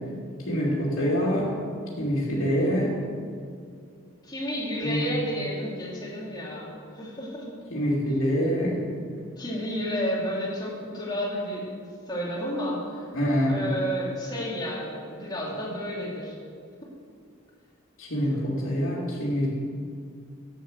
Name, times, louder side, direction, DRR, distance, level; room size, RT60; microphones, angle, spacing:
voice 1, 0.5-1.5 2.0-2.9 4.8-5.2 7.7-8.8 13.1-13.6 18.0-19.5, equal, 75° left, -7 dB, 2.7 m, -25 dB
voice 2, 4.2-7.5 9.4-13.0 13.5-16.4, equal, 20° left, -5 dB, 2.9 m, -31 dB
10.0 x 9.0 x 7.9 m, 2.3 s
head